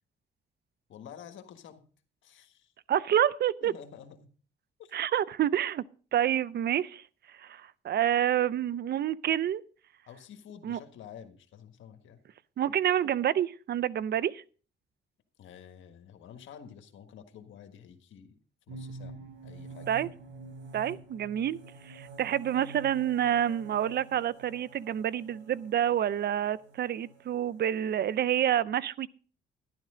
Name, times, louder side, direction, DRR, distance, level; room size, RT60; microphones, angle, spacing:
voice 1, 0.9-1.8 2.2-2.7 3.6-4.3 4.8-4.9 10.1-12.2 15.4-18.4 18.7-19.2 19.4-19.9, left 8 dB, 75° left, 1.6 m, -49 dB
voice 2, 2.9-3.7 4.9-5.8 6.1-7.0 7.4-9.6 10.6-10.8 12.6-14.4 19.9-20.1 20.7-29.1, right 10 dB, 55° right, 0.5 m, -28 dB
sound 1, 18.7-28.3, right 3 dB, 75° right, 4.4 m, -48 dB
12.0 x 11.0 x 3.8 m
cardioid pair, 90°, 20 cm